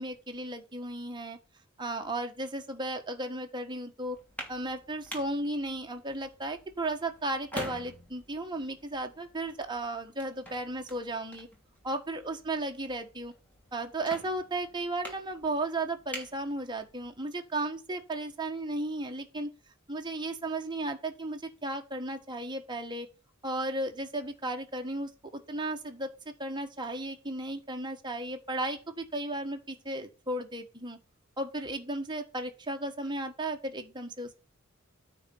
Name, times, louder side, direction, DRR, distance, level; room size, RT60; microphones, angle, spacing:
voice 1, 0.0-1.4 1.8-4.2 4.5-11.5 11.8-13.3 13.7-19.5 19.9-23.1 23.4-26.1 26.4-31.0 31.4-34.3, right 2 dB, 20° right, 4 dB, 1.4 m, -35 dB
sound 1, 4.1-17.2, equal, 5° left, 2.9 m, -47 dB
9.3 x 4.3 x 7.1 m, 0.30 s
head